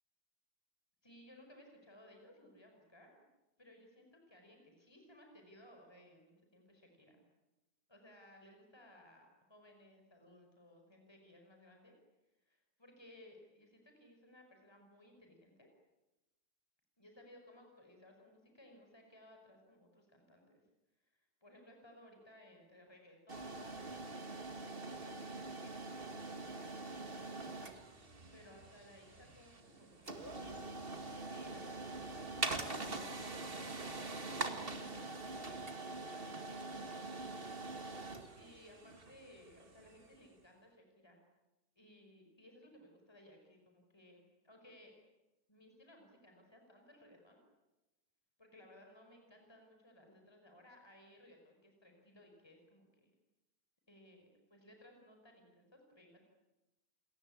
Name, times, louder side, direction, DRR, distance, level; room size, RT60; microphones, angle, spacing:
voice 1, 1.0-3.1 3.6-7.2 7.9-12.0 12.5-15.7 17.0-20.6 21.0-25.8 26.3-30.6 30.9-37.6 37.8-41.2 41.8-44.9 45.5-47.4 48.4-53.1 53.9-56.3, left 1 dB, 15° left, 3 dB, 5.3 m, -61 dB
sound 1, 23.3-40.1, right 3 dB, 35° right, 2.3 m, -44 dB
29.5 x 21.0 x 8.7 m, 1.0 s
omnidirectional pair, 1.6 m